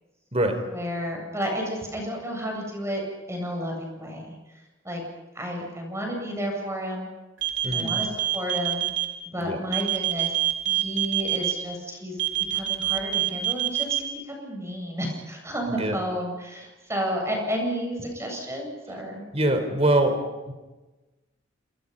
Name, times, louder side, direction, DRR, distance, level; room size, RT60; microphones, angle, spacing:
voice 1, 0.7-3.0 3.3-4.4 4.8-5.0 5.3-7.1 7.7-8.1 8.3-8.9 9.3-10.4 10.6-12.2 12.5-19.2, equal, 15° right, 1 dB, 8.0 m, -31 dB
sound 1, 7.4-9.0 9.7-11.5 12.2-14.0, right 15 dB, 70° right, 4.5 m, -25 dB
voice 2, 19.3-20.1 20.4-20.5, right 1 dB, 30° right, 7 dB, 4.5 m, -23 dB
29.0 x 28.0 x 5.6 m, 1.1 s
head